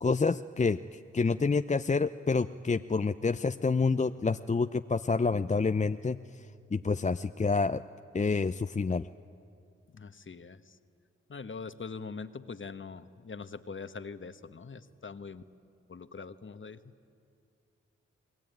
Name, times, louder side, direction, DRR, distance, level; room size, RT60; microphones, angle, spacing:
voice 1, 0.0-6.5 6.7-7.8 8.1-9.1, left 4 dB, 25° left, 10 dB, 0.6 m, -28 dB
voice 2, 9.9-10.6 11.3-15.4 15.9-16.8, left 5 dB, 40° left, 11 dB, 1.3 m, -42 dB
30.0 x 20.0 x 9.3 m, 2.4 s
supercardioid pair, 40°, 29 cm